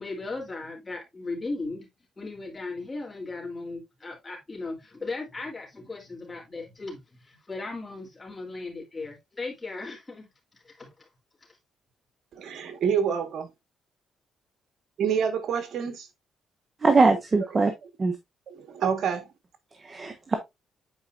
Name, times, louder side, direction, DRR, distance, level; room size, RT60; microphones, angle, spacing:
voice 1, 0.0-1.9 2.2-10.3 10.6-11.1, left 3 dB, 25° left, 3.5 m, -37 dB
voice 2, 12.4-13.5 15.0-16.1 17.6-17.7 18.5-19.3, right 7 dB, 65° right, 1.7 m, -27 dB
voice 3, 16.8-17.7 18.0-18.1 19.8-20.3, right 3 dB, 35° right, 1.2 m, -21 dB
8.9 x 4.8 x 2.6 m
cardioid pair, 90°, 0 cm